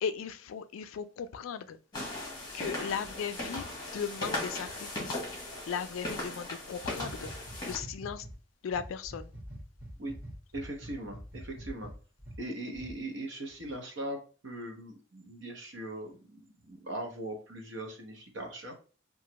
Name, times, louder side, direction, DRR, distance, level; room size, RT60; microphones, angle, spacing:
voice 1, 0.0-1.8 2.5-8.3 8.6-9.3, left 7 dB, 85° left, 0.3 m, -37 dB
sound 1, 1.9-7.8, left 1 dB, 20° left, 0.9 m, -38 dB
sound 2, 7.0-8.3 8.7-12.4 12.7-12.9, equal, 10° right, 1.0 m, -45 dB
voice 2, 10.5-11.9 12.4-18.8, right 1 dB, 70° right, 0.8 m, -40 dB
3.0 x 2.4 x 2.8 m
head